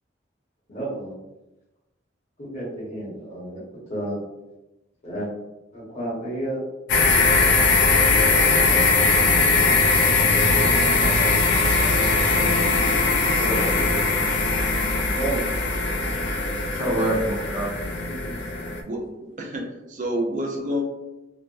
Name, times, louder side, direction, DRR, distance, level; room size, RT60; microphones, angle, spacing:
voice 1, 0.7-1.1 2.4-3.6 3.9-4.2 5.0-5.3 5.7-6.6 15.1-15.6, right 1 dB, 40° left, -7 dB, 1.1 m, -31 dB
sound 1, 6.9-18.8, left 3 dB, 65° left, 0.4 m, -20 dB
voice 2, 11.5-12.0 18.8-19.1 19.4-20.8, equal, 40° right, 0 dB, 0.5 m, -29 dB
voice 3, 13.2-14.1 14.5-14.9 16.7-17.7 18.0-18.3, right 1 dB, 75° right, -7 dB, 1.1 m, -28 dB
3.3 x 2.1 x 2.5 m, 1.0 s
head